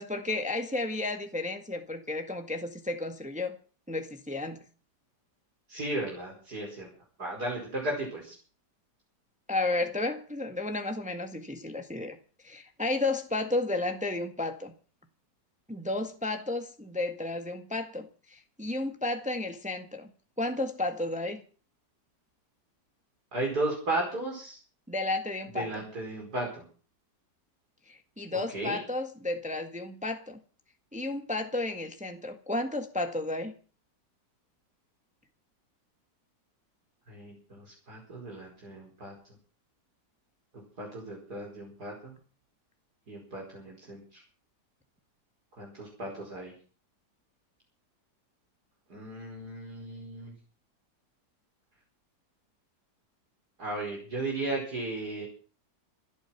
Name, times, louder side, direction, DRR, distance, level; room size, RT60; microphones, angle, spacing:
voice 1, 0.0-3.5 3.9-4.6 9.5-12.2 12.4-14.7 15.7-20.1 20.4-21.4 24.9-25.8 27.9-30.4 30.9-33.5, left 2 dB, 5° right, 5 dB, 1.5 m, -32 dB
voice 2, 5.7-6.9 7.2-8.3 23.3-24.6 25.6-26.6 28.5-28.8 37.1-39.1 40.8-42.1 43.1-44.0 45.6-46.5 48.9-50.3 53.6-55.3, right 2 dB, 60° right, -2 dB, 5.4 m, -35 dB
27.0 x 9.0 x 5.9 m, 0.40 s
omnidirectional pair, 1.9 m